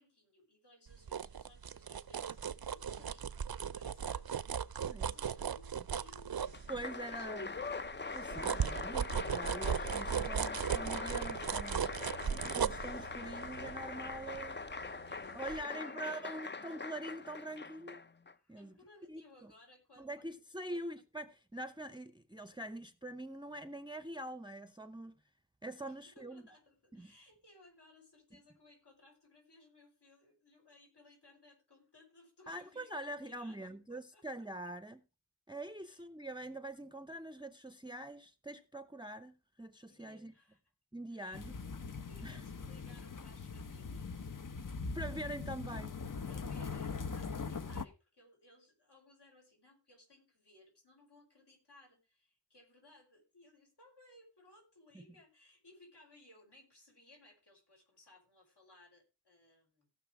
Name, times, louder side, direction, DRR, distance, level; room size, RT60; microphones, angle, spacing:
voice 1, 0.0-6.5 7.1-7.6 14.7-15.9 18.3-20.4 20.7-20.8 25.9-34.2 35.8-36.1 39.9-40.6 41.1-41.4 41.8-44.3 46.2-59.9, left 2 dB, 70° left, 5.7 m, -63 dB
sound 1, 0.9-7.1 7.6-15.1 15.5-15.6, right 7 dB, 60° right, 0.6 m, -37 dB
Applause, 6.4-18.3, left 4 dB, 25° left, 0.5 m, -42 dB
voice 2, 6.7-7.5 8.1-11.9 12.5-14.7 15.3-18.0 18.5-18.7 19.1-19.5 20.0-25.2 25.6-26.4 26.9-27.1 32.5-35.0 35.5-40.3 40.9-41.6 42.2-42.4 44.9-46.0 54.9-55.0, right 1 dB, 10° right, 0.7 m, -44 dB
sound 2, 41.3-47.9, left 4 dB, 50° left, 0.9 m, -41 dB
17.0 x 6.1 x 4.7 m
wide cardioid pair, 65°, 42 cm